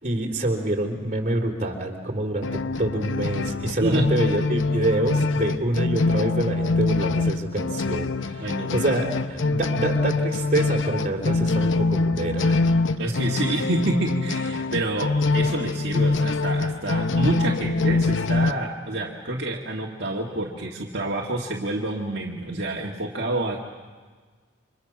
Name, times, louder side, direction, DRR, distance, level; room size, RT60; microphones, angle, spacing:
voice 1, 0.0-12.7, right 1 dB, 35° right, 1 dB, 3.5 m, -26 dB
sound 1, 2.4-18.5, left 3 dB, 80° left, 0.7 m, -24 dB
voice 2, 8.4-8.9 13.0-23.6, right 2 dB, 60° right, -3 dB, 1.9 m, -28 dB
29.5 x 25.5 x 6.0 m, 1.4 s
head